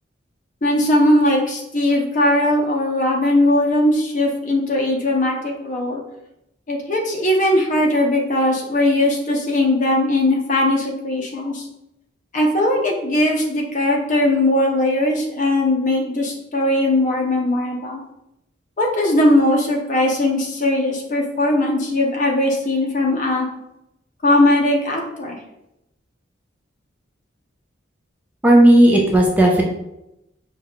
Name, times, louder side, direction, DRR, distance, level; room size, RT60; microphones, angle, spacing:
voice 1, 0.6-6.0 6.7-11.6 12.3-18.0 18.8-23.5 24.2-25.4, left 1 dB, 40° left, 0 dB, 0.8 m, -19 dB
voice 2, 28.4-29.6, right 1 dB, 10° right, -1 dB, 0.5 m, -12 dB
5.5 x 2.3 x 3.6 m, 0.86 s
head